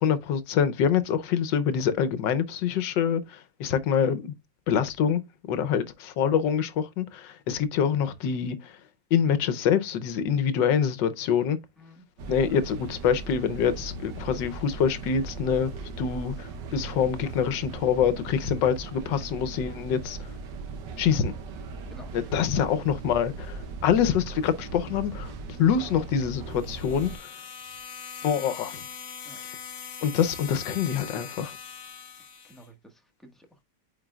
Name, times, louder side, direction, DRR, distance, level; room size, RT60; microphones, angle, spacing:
voice 1, 0.0-4.3 4.7-5.2 5.5-8.8 9.1-11.6 12.3-20.3 21.0-21.3 22.1-25.3 25.6-27.3 28.2-28.8 30.0-31.6, left 8 dB, 85° left, 1.5 m, -25 dB
sound 1, 12.2-27.2, right 4 dB, 75° right, 1.6 m, -38 dB
sound 2, 26.5-32.7, left 7 dB, 50° left, 1.1 m, -41 dB
voice 2, 32.2-33.6, equal, ahead, 1.1 m, -52 dB
9.0 x 4.5 x 2.3 m
omnidirectional pair, 1.9 m